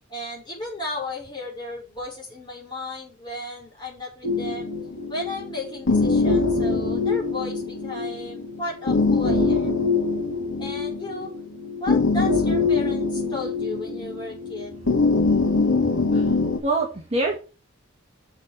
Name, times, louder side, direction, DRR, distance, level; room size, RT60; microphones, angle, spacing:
voice 1, 0.1-4.7 5.1-9.8 10.6-11.3 11.8-14.8, left 2 dB, 20° left, -3 dB, 5.3 m, -34 dB
sound 1, 4.2-16.6, left 3 dB, 60° left, 2.5 m, -23 dB
voice 2, 15.8-17.4, right 2 dB, 30° right, 0 dB, 1.9 m, -27 dB
6.8 x 6.6 x 7.3 m, 0.34 s
head